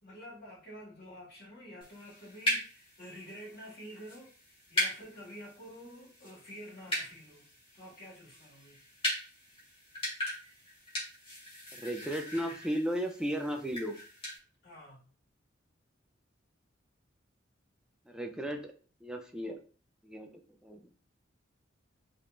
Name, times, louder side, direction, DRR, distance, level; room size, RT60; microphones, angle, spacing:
voice 1, 0.0-7.5 7.7-8.9 14.6-15.1, equal, 55° left, 2.2 m, -49 dB
sound 1, 1.8-14.4, equal, 30° left, 1.9 m, -39 dB
voice 2, 11.7-14.0 18.1-18.7 19.0-19.6 20.0-20.8, equal, 5° right, 0.4 m, -35 dB
4.4 x 3.5 x 2.5 m
head